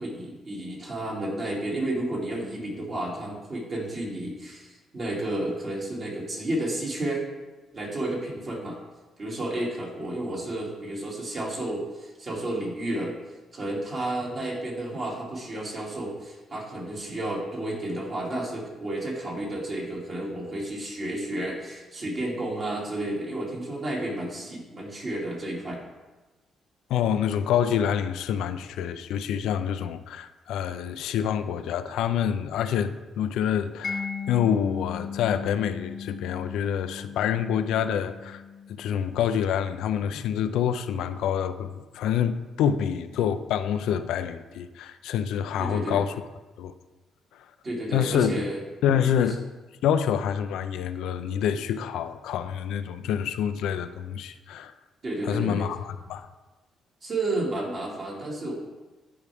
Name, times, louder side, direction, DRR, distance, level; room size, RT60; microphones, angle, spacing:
voice 1, 0.0-7.2 7.7-8.8 9.2-13.1 13.5-25.8 45.6-46.0 47.6-48.6 49.0-49.3 55.0-55.7 57.0-58.5, right 1 dB, 45° right, 2.5 m, -31 dB
voice 2, 26.9-38.4 38.7-46.2 46.6-46.7 47.3-47.5 47.9-48.3 48.8-49.4 49.8-54.7 55.2-56.3, left 9 dB, 85° left, 0.4 m, -27 dB
Mallet percussion, 33.8-40.6, left 5 dB, 40° left, 0.6 m, -38 dB
11.0 x 4.7 x 3.5 m
cardioid pair, 90°, 0 cm